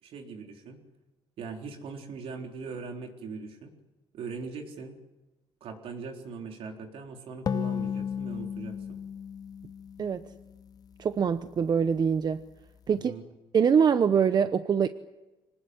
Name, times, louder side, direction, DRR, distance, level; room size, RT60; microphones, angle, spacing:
voice 1, 0.0-0.8 1.4-3.7 4.1-5.0 5.6-9.0 12.9-13.2, right 4 dB, 70° right, 3 dB, 4.0 m, -40 dB
sound 1, 7.5-10.9, left 7 dB, 40° left, 0.8 m, -34 dB
voice 2, 11.0-12.4 12.9-13.1 13.5-14.9, right 7 dB, 45° right, 11 dB, 0.9 m, -24 dB
25.0 x 19.0 x 8.1 m, 1.1 s
cardioid pair, 100°, 10 cm